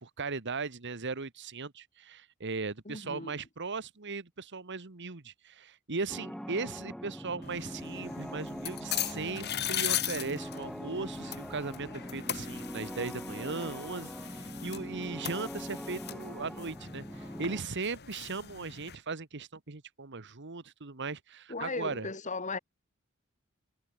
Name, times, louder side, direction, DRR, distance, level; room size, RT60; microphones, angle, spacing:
voice 1, 0.0-22.1, right 4 dB, 60° right, 1.4 m, -38 dB
voice 2, 2.9-3.4 21.5-22.6, left 3 dB, 35° left, 3.5 m, -37 dB
sound 1, 6.1-17.6, equal, 5° left, 3.8 m, -42 dB
sound 2, 7.4-19.0, left 11 dB, 50° left, 2.5 m, -39 dB
head